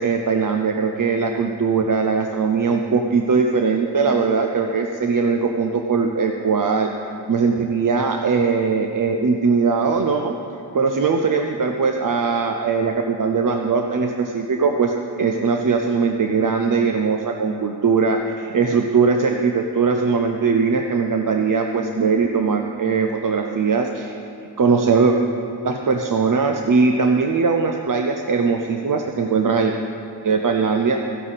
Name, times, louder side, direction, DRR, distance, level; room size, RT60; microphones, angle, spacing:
voice 1, 0.0-6.9 7.3-10.4 10.7-24.2 24.6-25.2 25.6-29.7 30.2-31.0, right 5 dB, 45° right, 4 dB, 0.6 m, -20 dB
14.5 x 11.5 x 4.1 m, 2.7 s
wide cardioid pair, 110°, 45 cm